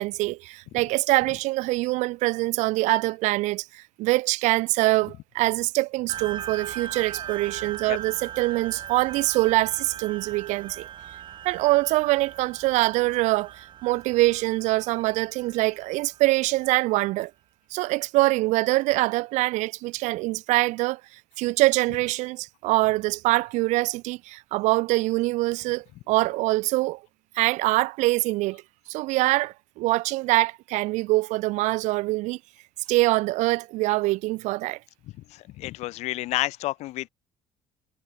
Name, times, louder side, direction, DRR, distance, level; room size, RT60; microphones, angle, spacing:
voice 1, 0.0-10.9 11.4-17.3 17.7-21.0 21.4-27.0 27.3-28.6 28.9-32.4 32.9-34.8, right 20 dB, 85° right, 2.9 m, -24 dB
sound 1, 6.1-17.0, right 10 dB, 40° right, 6.5 m, -40 dB
voice 2, 35.3-37.1, left 17 dB, 70° left, 1.3 m, -30 dB
cardioid pair, 160°, 12 cm